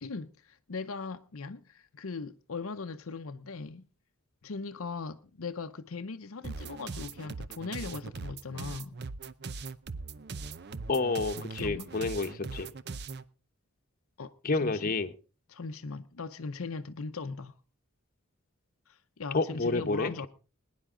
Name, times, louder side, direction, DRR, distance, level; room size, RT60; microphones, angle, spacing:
voice 1, 0.0-3.8 4.4-9.0 11.4-11.9 14.2-14.9 15.5-17.5 18.9-20.3, left 4 dB, 75° left, 0.7 m, -39 dB
sound 1, 6.4-13.2, right 4 dB, 50° right, 0.6 m, -40 dB
voice 2, 10.9-12.7 14.4-15.1 19.3-20.3, left 3 dB, 40° left, 1.1 m, -29 dB
21.0 x 10.0 x 3.8 m
head